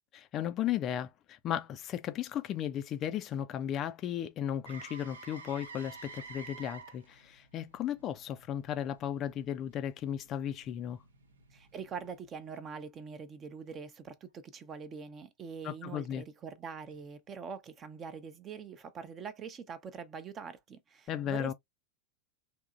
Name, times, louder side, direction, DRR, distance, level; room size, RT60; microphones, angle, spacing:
voice 1, 0.1-11.0 15.6-16.2 21.1-21.5, left 10 dB, 30° left, 0.4 m, -35 dB
Motor vehicle (road), 4.7-12.6 16.9-17.0, right 4 dB, 70° right, 0.7 m, -52 dB
voice 2, 11.5-21.5, right 6 dB, 25° right, 0.7 m, -44 dB
3.5 x 2.8 x 2.4 m
figure-of-eight pair, 90°, 0 cm